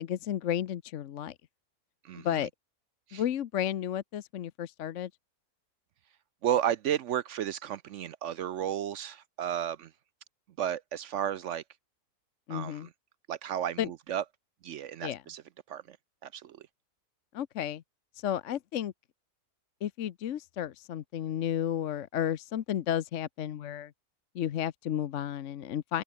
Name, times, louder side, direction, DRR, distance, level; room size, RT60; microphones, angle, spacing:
voice 1, 0.0-1.3 2.1-2.5 3.1-5.1 12.5-12.9 13.8-13.9 15.0-15.2 17.3-17.8 18.2-18.9 19.8-23.9 24.3-26.0, left 10 dB, 60° left, 1.0 m, -32 dB
voice 2, 2.0-2.5 3.1-3.2 6.4-9.9 10.6-11.6 12.5-12.9 13.3-14.2 14.6-15.4 15.7-16.0 16.2-16.6, right 10 dB, 65° right, 0.8 m, -33 dB
open air
omnidirectional pair, 1.7 m